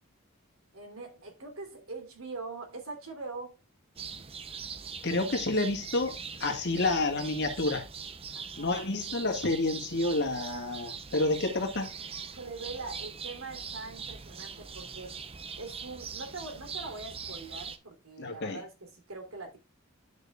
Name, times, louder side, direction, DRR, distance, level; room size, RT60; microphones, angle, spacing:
voice 1, 0.7-3.5 8.3-8.8 12.3-15.2 15.6-19.6, right 3 dB, 75° right, 3.2 m, -42 dB
sound 1, 4.0-17.8, right 6 dB, 25° right, 0.7 m, -42 dB
voice 2, 5.0-7.9 8.6-11.9 18.2-18.6, left 2 dB, 50° left, 1.9 m, -29 dB
11.0 x 6.5 x 2.4 m
head